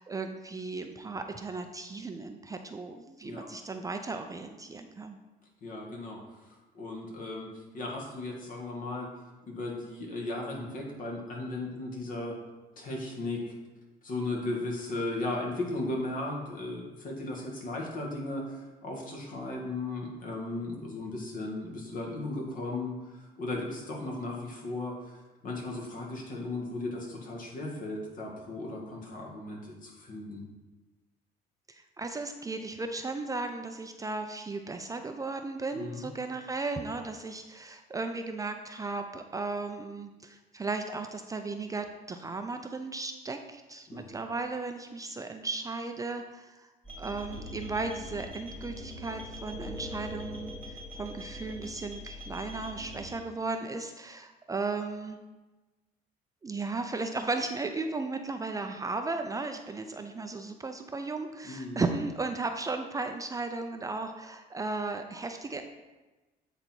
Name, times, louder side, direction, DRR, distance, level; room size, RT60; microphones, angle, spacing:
voice 1, 0.0-5.2 31.7-46.7 47.0-55.2 56.4-65.6, right 3 dB, 20° right, 6 dB, 0.4 m, -35 dB
voice 2, 5.6-9.1 9.5-12.4 12.8-13.5 14.0-30.4 35.7-36.1 43.9-44.2 61.4-61.8, left 2 dB, 55° left, -1 dB, 2.0 m, -36 dB
sound 1, 46.8-53.1, left 1 dB, 15° left, 2.3 m, -42 dB
8.5 x 3.9 x 4.5 m, 1.2 s
cardioid pair, 110°, 17 cm